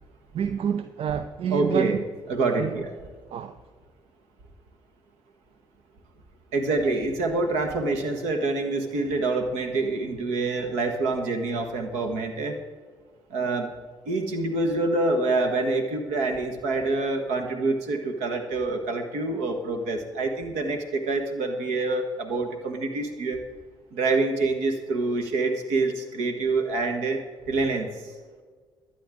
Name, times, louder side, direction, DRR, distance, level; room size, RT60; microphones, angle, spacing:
voice 1, 0.3-2.0 2.6-2.8 3.3-3.6, right 8 dB, 50° right, 0.6 m, -28 dB
voice 2, 1.5-2.0 2.3-2.9 6.5-12.5 13.3-13.7 14.1-23.4 23.9-27.2 27.5-27.9, right 3 dB, 65° right, 1.6 m, -26 dB
21.5 x 9.4 x 3.7 m
figure-of-eight pair, 45°, 13 cm